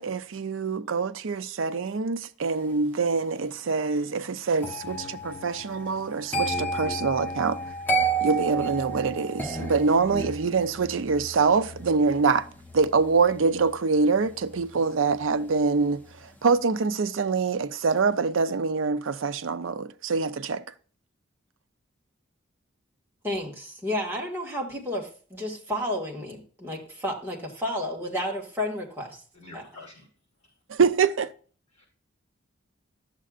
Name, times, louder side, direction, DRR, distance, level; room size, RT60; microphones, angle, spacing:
voice 1, 0.0-7.6 8.2-12.5 12.7-20.6 30.7-31.3, right 4 dB, 80° right, 0.5 m, -25 dB
sound 1, 4.6-15.6 15.9-16.2, right 3 dB, 10° left, 0.8 m, -33 dB
voice 2, 23.2-29.2 29.5-29.6, left 1 dB, 10° right, 1.8 m, -31 dB
voice 3, 29.3-30.1 31.8-31.9, left 2 dB, 35° left, 4.6 m, -46 dB
11.0 x 7.5 x 2.4 m
head